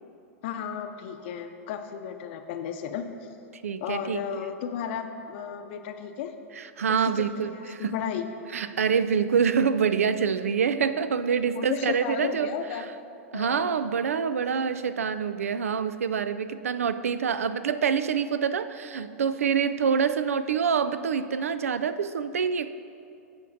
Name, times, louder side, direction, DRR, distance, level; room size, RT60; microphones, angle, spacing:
voice 1, 0.4-3.1 3.8-6.3 6.9-8.3 11.5-12.8 13.3-13.8, left 8 dB, 55° left, 7 dB, 0.6 m, -34 dB
voice 2, 3.6-4.5 6.6-8.0 8.5-12.9 13.3-22.7, right 6 dB, 85° right, 13 dB, 0.4 m, -26 dB
14.5 x 5.2 x 2.6 m, 2.6 s
hypercardioid pair, 115°, 7 cm